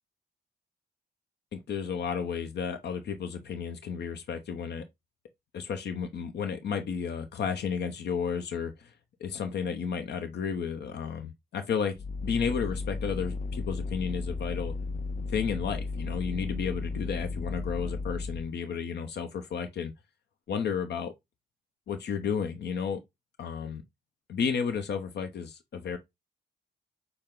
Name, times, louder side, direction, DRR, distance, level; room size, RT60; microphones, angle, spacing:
voice 1, 1.5-4.8 5.5-8.9 9.2-11.9 12.2-14.7 15.3-19.9 20.5-21.1 21.9-23.0 23.4-23.8 24.3-26.0, left 6 dB, 80° left, 0.7 m, -32 dB
sound 1, 11.9-18.5, left 3 dB, 50° left, 0.6 m, -34 dB
6.6 x 2.2 x 3.6 m
wide cardioid pair, 110°, 17 cm